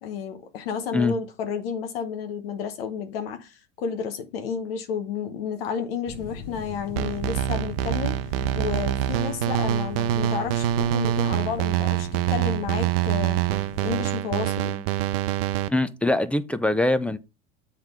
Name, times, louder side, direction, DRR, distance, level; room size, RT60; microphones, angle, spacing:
voice 1, 0.0-8.2 8.6-13.4 13.8-14.8, left 7 dB, 90° left, 1.0 m, -31 dB
sound 1, 6.1-14.2, left 6 dB, 60° left, 1.3 m, -40 dB
sound 2, 7.0-15.7, right 12 dB, 80° right, 0.7 m, -25 dB
voice 2, 15.7-17.2, left 2 dB, 5° left, 0.5 m, -23 dB
7.8 x 3.7 x 4.5 m
supercardioid pair, 120°, 29 cm